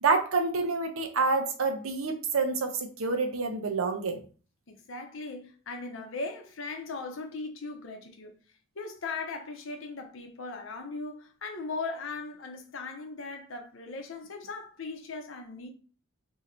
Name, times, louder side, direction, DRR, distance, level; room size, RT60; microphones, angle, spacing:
voice 1, 0.0-4.2, right 4 dB, 85° right, 0.7 m, -28 dB
voice 2, 4.7-8.3 8.8-15.7, left 3 dB, 70° left, 0.7 m, -38 dB
2.8 x 2.5 x 4.3 m
head